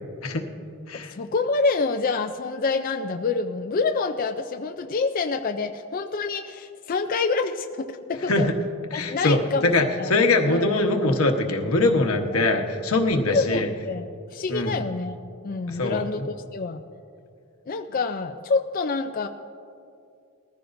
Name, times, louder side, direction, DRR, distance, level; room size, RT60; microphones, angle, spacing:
voice 1, 0.9-8.5 8.9-9.7 10.0-10.1 10.5-10.7 13.3-15.2 15.4-16.2 16.5-16.8 17.7-19.3, left 4 dB, 40° left, 6 dB, 0.4 m, -27 dB
voice 2, 8.9-13.7 14.5-14.8 15.7-16.3, left 2 dB, 90° left, 4 dB, 1.2 m, -22 dB
20.5 x 14.5 x 2.6 m, 2.4 s
head